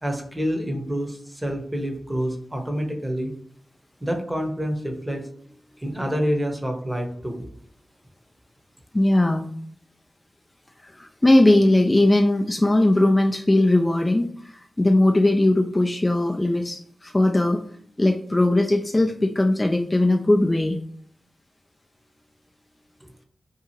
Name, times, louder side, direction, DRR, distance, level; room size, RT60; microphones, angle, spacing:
voice 1, 0.0-3.3 4.0-5.2 5.8-7.5 23.0-23.1, equal, 15° right, 3 dB, 0.8 m, -27 dB
voice 2, 8.9-9.5 10.8-17.6 18.0-20.8, left 1 dB, 25° left, 4 dB, 0.3 m, -19 dB
2.8 x 2.4 x 2.8 m, 0.63 s
cardioid pair, 40°, 0 cm